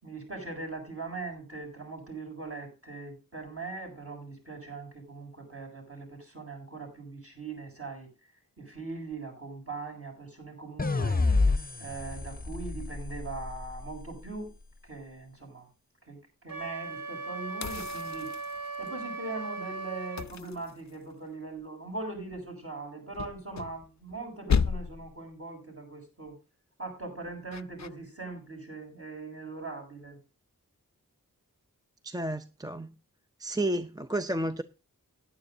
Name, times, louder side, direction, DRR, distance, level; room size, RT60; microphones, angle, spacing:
voice 1, 0.0-8.1 8.6-11.2 11.8-14.5 14.8-15.7 16.0-18.3 18.8-26.4 26.8-30.2, right 3 dB, 40° right, 7.4 m, -41 dB
sound 1, 10.8-14.0, left 3 dB, 25° left, 0.8 m, -29 dB
Wind instrument woodwind instrument, 16.5-20.3, right 3 dB, 75° right, 1.6 m, -38 dB
sound 2, 17.6-18.9 20.2-21.3 23.1-24.2 24.5-25.2 27.5-27.9, left 6 dB, 55° left, 0.5 m, -32 dB
voice 2, 32.0-32.9 33.4-34.6, right 1 dB, 10° right, 0.5 m, -31 dB
17.0 x 10.0 x 2.7 m
wide cardioid pair, 55°, 34 cm